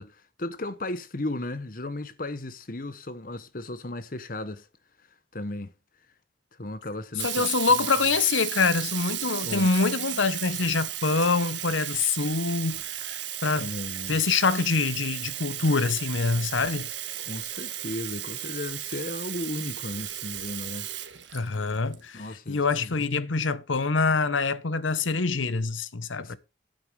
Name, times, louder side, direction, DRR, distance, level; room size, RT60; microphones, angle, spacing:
voice 1, 0.0-4.7 5.3-5.7 6.6-7.5 9.4-9.7 13.6-14.2 17.2-20.9 22.1-22.9 26.2-26.4, left 2 dB, 45° left, 1.1 m, -35 dB
voice 2, 7.2-13.7 14.1-16.9 21.3-26.4, left 4 dB, 85° left, 1.0 m, -25 dB
Sink (filling or washing), 7.2-21.9, right 13 dB, 70° right, 1.4 m, -34 dB
9.0 x 9.0 x 4.7 m
head